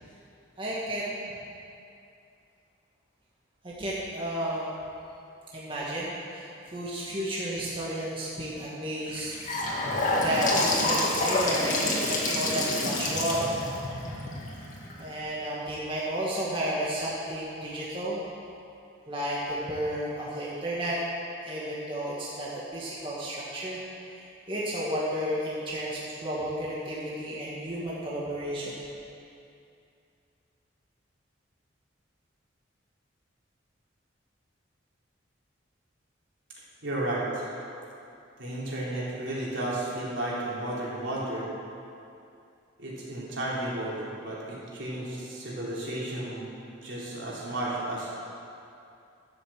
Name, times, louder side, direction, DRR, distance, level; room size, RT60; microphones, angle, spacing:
voice 1, 0.6-1.3 3.6-4.7 5.5-9.3 10.2-13.5 15.0-18.2 19.1-21.0 21.4-23.8 24.1-28.8, right 1 dB, 25° right, -7 dB, 1.8 m, -32 dB
Gurgling / Sink (filling or washing) / Bathtub (filling or washing), 9.1-15.1, left 2 dB, 40° left, 2.1 m, -28 dB
voice 2, 36.8-37.5 38.4-41.5 42.8-46.5 46.8-48.1, right 1 dB, 70° right, -6 dB, 3.7 m, -33 dB
12.5 x 8.0 x 7.5 m, 2.6 s
head